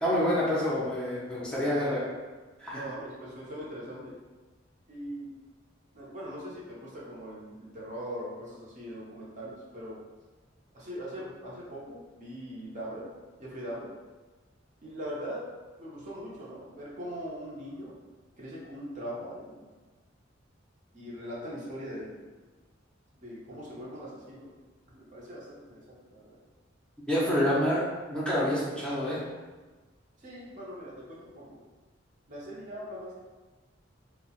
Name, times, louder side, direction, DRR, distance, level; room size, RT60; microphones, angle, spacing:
voice 1, 0.0-2.0 2.6-2.8 27.1-27.8 28.1-29.2, left 1 dB, 5° left, -8 dB, 0.5 m, -27 dB
voice 2, 2.7-4.2 4.9-5.3 5.9-10.0 10.7-13.1 13.4-13.9 14.8-15.4 15.8-18.0 18.4-19.7 20.9-22.2 23.2-24.5 24.9-26.4 30.2-31.6 32.3-33.2, equal, 40° right, -6 dB, 0.6 m, -41 dB
2.8 x 2.0 x 2.8 m, 1.3 s
head